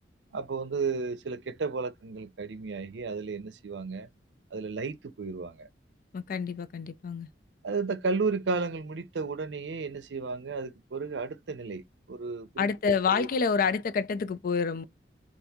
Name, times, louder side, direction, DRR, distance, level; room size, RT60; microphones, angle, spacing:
voice 1, 0.3-4.1 4.5-5.7 7.6-11.8 12.1-12.7 13.1-13.3, right 4 dB, 90° right, 0.5 m, -33 dB
voice 2, 6.1-7.3 12.6-14.8, left 5 dB, 55° left, 0.4 m, -28 dB
2.7 x 2.6 x 3.4 m
head